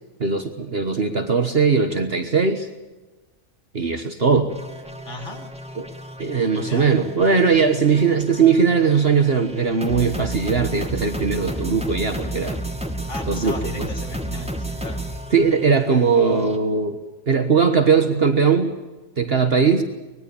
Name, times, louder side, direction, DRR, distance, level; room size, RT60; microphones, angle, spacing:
voice 1, 0.2-2.7 3.7-4.5 5.8-5.9 6.2-12.6 13.3-13.9 15.3-17.0 17.3-18.7 19.2-19.8, right 5 dB, 50° right, 7 dB, 1.6 m, -19 dB
sound 1, 4.5-16.6, right 1 dB, 5° right, 2.4 m, -32 dB
voice 2, 5.0-5.5 6.5-7.0 13.1-15.1, left 2 dB, 65° left, 2 dB, 3.5 m, -36 dB
24.0 x 21.0 x 7.1 m, 1.2 s
omnidirectional pair, 1.3 m